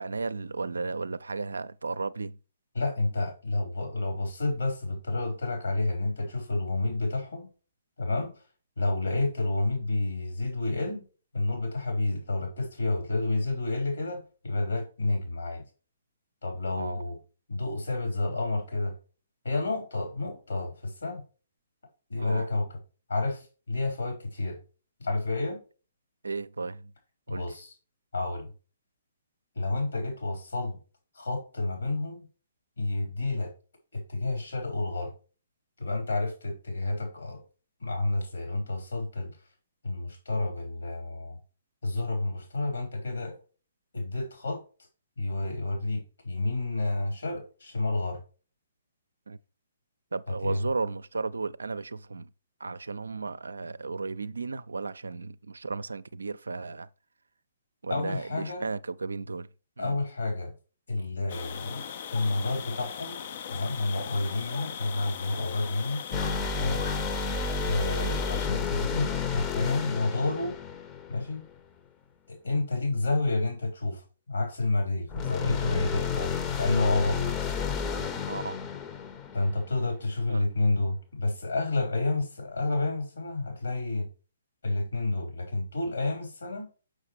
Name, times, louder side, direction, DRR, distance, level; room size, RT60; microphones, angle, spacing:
voice 1, 0.0-2.4 16.8-17.0 22.2-22.5 26.2-26.9 27.3-27.5 49.3-49.4 50.1-52.3 52.6-56.9 57.8-59.5 59.8-60.0 78.3-78.7 80.3-80.5, right 4 dB, 75° right, 0.4 m, -34 dB
voice 2, 2.7-7.5 8.0-8.4 8.8-11.0 11.3-15.6 16.4-17.2 17.5-18.9 19.4-21.2 22.1-22.8 23.1-24.6 25.0-25.6 27.3-27.7 28.1-28.5 29.6-30.8 31.1-32.3 32.8-33.5 33.9-35.1 35.8-37.4 37.8-39.3 39.8-41.4 41.8-43.4 43.9-44.6 45.2-48.2 50.3-50.6 57.9-58.6 59.8-60.5 60.9-61.8 62.1-63.2 63.5-66.9 67.6-70.6 71.1-71.4 72.3-77.3 79.3-84.1 84.6-86.7, left 2 dB, 75° left, 4.0 m, -30 dB
sound 1, 61.3-68.5, left 7 dB, 50° left, 0.5 m, -39 dB
sound 2, 66.1-71.6 75.1-79.9, left 5 dB, 25° left, 0.7 m, -31 dB
6.5 x 6.4 x 3.2 m
figure-of-eight pair, 125°, 0 cm